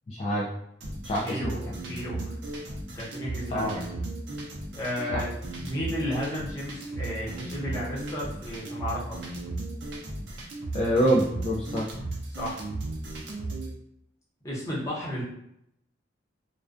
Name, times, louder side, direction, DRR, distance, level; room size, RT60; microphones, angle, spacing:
voice 1, 0.1-0.5 1.0-1.8 3.5-3.8 5.1-5.2 10.7-11.9, equal, 35° left, -4 dB, 0.3 m, -26 dB
sound 1, 0.8-13.7, right 2 dB, 70° right, 0.5 m, -35 dB
voice 2, 1.2-2.4 3.0-3.9 4.7-5.3 5.6-9.2 12.3-12.6 14.4-15.2, equal, 15° left, -8 dB, 0.8 m, -33 dB
2.3 x 2.2 x 2.4 m, 0.76 s
head